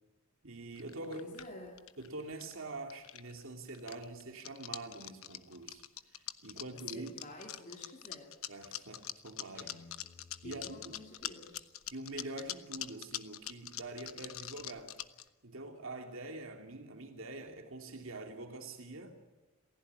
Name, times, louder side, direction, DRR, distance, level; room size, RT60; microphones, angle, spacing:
voice 1, 0.4-1.3 2.0-7.3 8.5-9.8 10.4-11.0 11.9-15.0 15.4-19.2, right 2 dB, 60° right, 2.7 m, -45 dB
sound 1, 0.8-2.6 2.9-3.4 3.7-15.2, left 12 dB, 70° left, 1.1 m, -43 dB
voice 2, 1.0-1.8 6.6-8.3 10.4-11.7, left 1 dB, 35° left, 3.2 m, -49 dB
Guitar, 9.5-11.6, left 3 dB, 10° right, 6.5 m, -59 dB
28.5 x 16.0 x 9.7 m
head